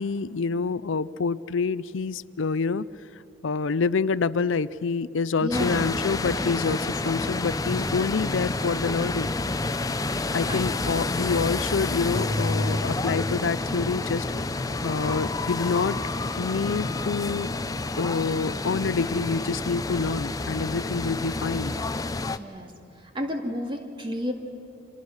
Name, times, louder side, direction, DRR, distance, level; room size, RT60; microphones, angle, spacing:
voice 1, 0.0-2.8 3.4-9.3 10.3-14.2 14.8-16.0 16.4-17.5 18.0-21.8, left 4 dB, 80° left, 17 dB, 0.5 m, -27 dB
voice 2, 5.4-5.9 10.4-10.7 22.3-22.7 23.1-24.3, equal, 25° right, 3 dB, 2.2 m, -31 dB
sound 1, 5.5-22.4, left 2 dB, 20° left, 0.6 m, -29 dB
30.0 x 26.5 x 6.4 m, 2.5 s
head